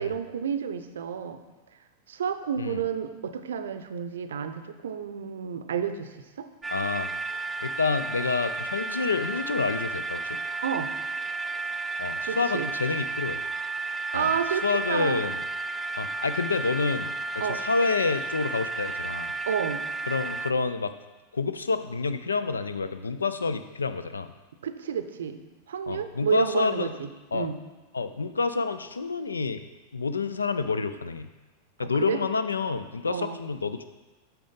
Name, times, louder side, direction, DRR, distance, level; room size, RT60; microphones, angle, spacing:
voice 1, 0.0-1.4 2.1-6.5 10.6-10.9 12.2-12.7 14.1-14.6 14.9-15.2 17.4-17.6 19.5-19.8 24.6-25.4 25.7-27.6 32.1-32.2 33.1-33.4, right 7 dB, 65° right, 9 dB, 0.5 m, -30 dB
sound 1, 6.6-20.5, right 3 dB, 10° right, 0.3 m, -32 dB
voice 2, 6.7-7.1 7.6-10.4 12.0-13.4 14.1-14.3 14.6-15.4 16.0-19.3 20.1-20.9 21.3-24.3 25.9-26.9 27.3-27.5 27.9-29.7 29.9-31.3 31.8-33.8, left 4 dB, 75° left, 11 dB, 0.4 m, -28 dB
8.3 x 6.0 x 3.9 m, 1.2 s
figure-of-eight pair, 90°, 0 cm